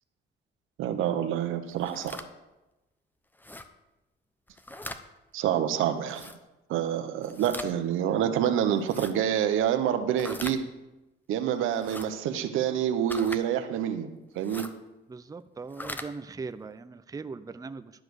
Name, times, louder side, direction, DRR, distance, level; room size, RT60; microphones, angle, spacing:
voice 1, 0.8-2.2 5.3-6.3 6.7-10.6 11.3-14.7, right 9 dB, 90° right, 9 dB, 1.0 m, -27 dB
sound 1, 1.7-2.3 3.4-3.7 4.5-5.0 6.1-6.4 7.2-7.7 8.8-9.1 10.2-10.6 11.7-12.1 13.1-13.4 14.4-14.7 15.6-16.1, left 1 dB, 10° left, 0.8 m, -40 dB
voice 2, 15.1-17.9, right 4 dB, 20° right, 12 dB, 0.5 m, -40 dB
12.0 x 5.0 x 8.1 m, 1.0 s
cardioid pair, 90°, 20 cm